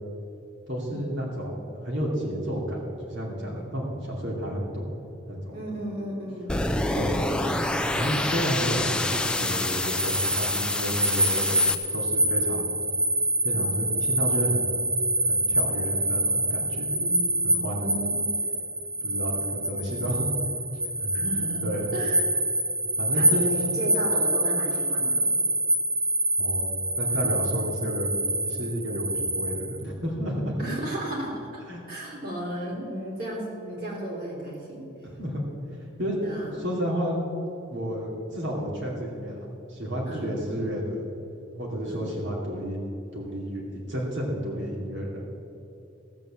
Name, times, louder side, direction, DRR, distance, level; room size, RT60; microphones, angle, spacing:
voice 1, 0.7-4.8 5.3-5.6 6.9-7.3 7.9-11.6 11.9-12.7 13.4-14.6 15.2-16.9 17.4-17.9 19.0-20.3 21.0-21.1 21.6-21.9 23.0-23.8 26.4-26.6 26.9-28.1 28.4-30.6 31.7-31.8 35.0-35.4 36.0-36.2 36.6-37.2 37.7-39.4 39.7-41.0 41.5-42.8 43.1-43.6 43.9-45.3, equal, 75° right, -3 dB, 2.7 m, -31 dB
voice 2, 5.5-6.7 7.4-7.8 11.6-11.8 13.5-13.7 16.9-18.2 21.1-22.2 23.0-25.4 27.1-27.3 30.6-31.6 31.9-34.9 36.2-36.5 40.1-40.3 41.9-42.0, right 1 dB, 50° right, -3 dB, 3.7 m, -34 dB
sound 1, 6.5-11.7, left 2 dB, 5° left, 0.4 m, -27 dB
sound 2, 10.0-29.8, right 1 dB, 15° right, 0.8 m, -26 dB
16.0 x 7.2 x 7.4 m, 2.7 s
head